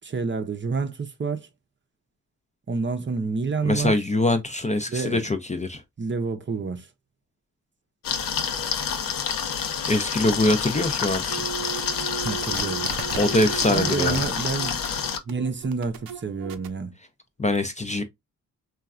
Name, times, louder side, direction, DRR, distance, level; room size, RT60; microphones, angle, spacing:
voice 1, 0.0-1.5 2.7-4.0 4.9-5.2 6.0-6.9 12.2-12.9 13.7-16.9, right 4 dB, 35° right, 0.6 m, -29 dB
voice 2, 3.6-5.8 9.9-11.4 13.1-14.2 17.4-18.0, left 1 dB, 20° left, 0.5 m, -23 dB
sound 1, 8.0-15.2, left 7 dB, 70° left, 0.7 m, -28 dB
sound 2, 11.3-16.7, right 9 dB, 75° right, 0.5 m, -36 dB
3.0 x 2.4 x 2.4 m
cardioid pair, 60°, 35 cm